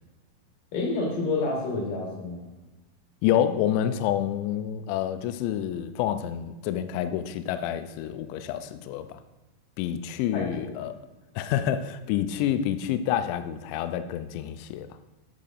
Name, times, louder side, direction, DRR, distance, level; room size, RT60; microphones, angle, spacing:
voice 1, 0.7-2.5 10.3-10.7, left 3 dB, 60° left, -2 dB, 2.5 m, -29 dB
voice 2, 3.2-9.2 9.8-11.0 11.4-14.9, left 10 dB, 90° left, 10 dB, 2.5 m, -28 dB
12.5 x 6.6 x 2.5 m, 1.1 s
omnidirectional pair, 5.6 m